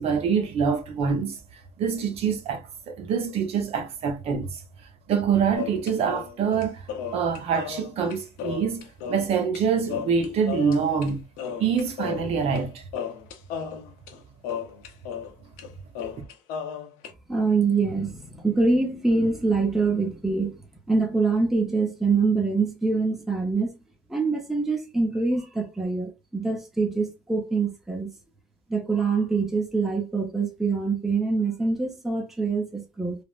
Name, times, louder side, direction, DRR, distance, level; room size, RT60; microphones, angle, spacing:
voice 1, 0.0-4.6 5.1-11.2 11.6-12.8, right 6 dB, 45° right, 0.7 m, -25 dB
sound 1, 5.5-9.6 9.9-11.1 11.4-12.7 12.9-15.3 15.6-15.7 15.9-17.1, left 7 dB, 80° left, 0.7 m, -34 dB
voice 2, 17.3-20.6 20.9-23.7 24.1-28.1 28.7-33.2, right 4 dB, ahead, 0.5 m, -24 dB
3.3 x 2.0 x 2.4 m
cardioid pair, 145°, 14 cm